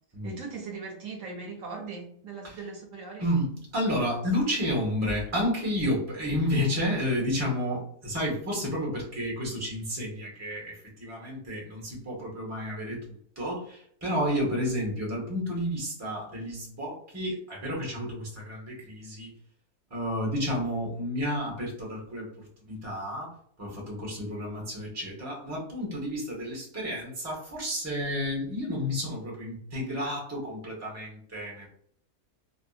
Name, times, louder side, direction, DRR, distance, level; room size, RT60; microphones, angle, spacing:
voice 1, 0.2-3.3, right 4 dB, 75° right, 1 dB, 0.9 m, -39 dB
voice 2, 3.2-19.3 19.9-23.3 23.6-31.7, equal, 15° right, -3 dB, 0.7 m, -31 dB
2.6 x 2.6 x 2.3 m, 0.66 s
omnidirectional pair, 1.5 m